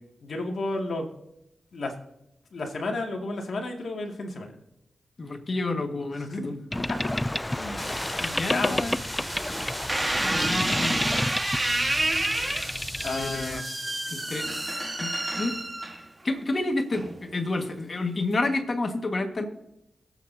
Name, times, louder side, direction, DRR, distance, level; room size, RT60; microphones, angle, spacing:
voice 1, 0.2-1.1 1.7-1.9 2.5-4.6 6.2-6.4 7.6-7.9 8.5-9.0 13.0-13.7, left 2 dB, 70° left, 1 dB, 2.2 m, -32 dB
voice 2, 5.2-6.6 8.2-9.0 10.2-11.1 13.0-13.6 14.1-14.5 15.0-15.6 16.2-19.5, left 2 dB, 45° left, 5 dB, 1.7 m, -29 dB
Boat Water vehicle, 6.7-13.6, left 1 dB, 15° left, 0.3 m, -31 dB
sound 1, 7.8-15.0, equal, ahead, 3.2 m, -38 dB
sound 2, 9.9-16.3 16.9-17.4, right 1 dB, 20° right, 1.5 m, -29 dB
23.0 x 8.3 x 2.8 m, 0.84 s
cardioid pair, 60°, 0 cm